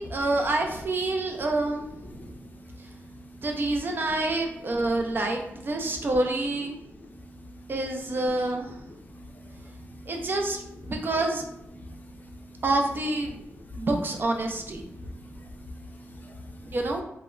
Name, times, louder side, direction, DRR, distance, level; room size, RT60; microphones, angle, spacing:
voice 1, 0.0-2.1 3.4-6.8 7.7-8.7 10.1-11.4 12.6-13.4 13.8-14.8 16.7-17.0, right 2 dB, 45° right, 2 dB, 0.5 m, -27 dB
voice 2, 1.2-3.5 3.8-4.8 5.1-5.3 5.9-6.1 6.7-7.7 8.4-8.5 8.9-10.3 10.7-10.8 11.7-12.6 13.5-13.9 14.8-16.8, left 1 dB, 35° left, 3 dB, 0.5 m, -45 dB
2.1 x 2.1 x 3.6 m, 0.79 s
cardioid pair, 85°, 5 cm